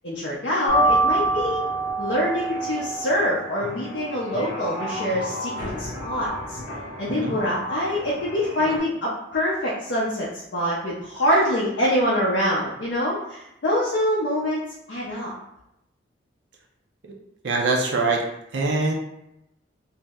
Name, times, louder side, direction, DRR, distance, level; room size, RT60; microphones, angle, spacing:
voice 1, 0.0-1.6 2.0-6.6 7.0-14.6 14.9-15.3, equal, 60° left, -6 dB, 0.5 m, -25 dB
sound 1, 0.7-8.8, right 2 dB, 85° left, 0.8 m, -28 dB
voice 2, 17.4-18.2 18.5-18.9, right 3 dB, 60° right, 0 dB, 0.4 m, -23 dB
2.6 x 2.0 x 3.5 m, 0.84 s
head